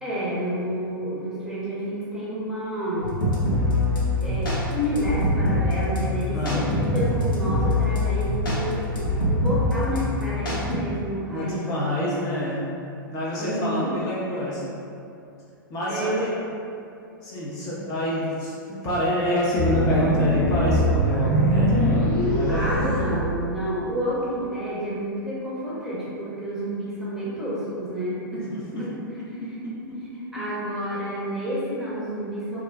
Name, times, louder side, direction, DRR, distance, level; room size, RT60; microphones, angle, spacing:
voice 1, 0.0-3.2 4.2-8.8 9.3-12.1 13.4-13.9 15.9-16.2 22.5-28.5 28.8-28.9 30.3-32.6, equal, 5° right, -9 dB, 0.7 m, -29 dB
sound 1, 3.0-10.7, left 1 dB, 70° left, 0.8 m, -24 dB
voice 2, 6.3-6.7 11.3-12.7 13.1-14.6 15.7-16.3 17.2-22.7 28.5-28.8 29.2-30.0, equal, 30° left, -7 dB, 0.6 m, -27 dB
sound 2, 19.6-23.8, equal, 50° left, 1.1 m, -22 dB
2.3 x 2.2 x 3.3 m, 2.6 s
figure-of-eight pair, 105°, 12 cm